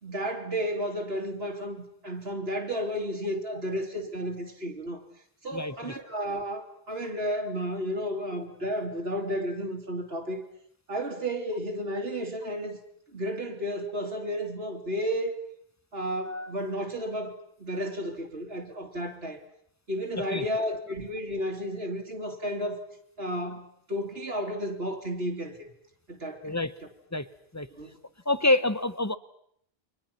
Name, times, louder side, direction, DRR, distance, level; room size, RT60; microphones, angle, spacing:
voice 1, 0.0-5.0 5.4-10.4 10.9-12.8 13.1-15.4 15.9-17.3 17.6-19.4 19.9-22.8 23.2-25.6 26.1-26.5 27.8-28.0, equal, 80° right, 1 dB, 3.2 m, -32 dB
voice 2, 5.5-5.9 20.2-20.4 26.4-26.8 27.1-27.3 27.5-27.7 28.3-29.2, left 2 dB, 15° left, 14 dB, 0.9 m, -27 dB
29.5 x 24.0 x 5.9 m, 0.67 s
omnidirectional pair, 1.0 m